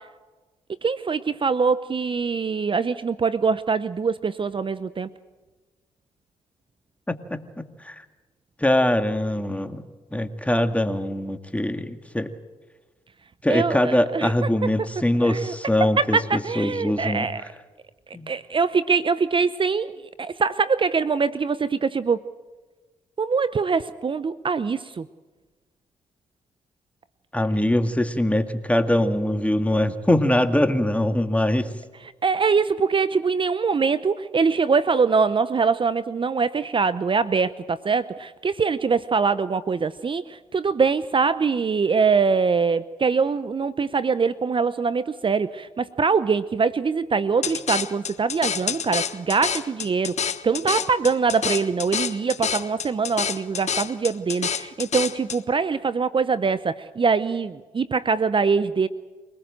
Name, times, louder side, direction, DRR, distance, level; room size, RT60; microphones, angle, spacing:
voice 1, 0.8-5.1 13.5-14.3 15.2-15.5 16.0-17.4 18.3-22.2 23.2-25.1 32.2-58.9, right 5 dB, 40° right, 14 dB, 0.8 m, -23 dB
voice 2, 7.1-8.0 8.6-12.3 13.4-17.3 18.1-18.3 27.3-31.7, left 1 dB, 10° left, 8 dB, 2.1 m, -23 dB
sound 1, 47.4-55.4, left 7 dB, 55° left, 1.2 m, -28 dB
24.0 x 19.5 x 7.7 m, 1.3 s
supercardioid pair, 50°, 14 cm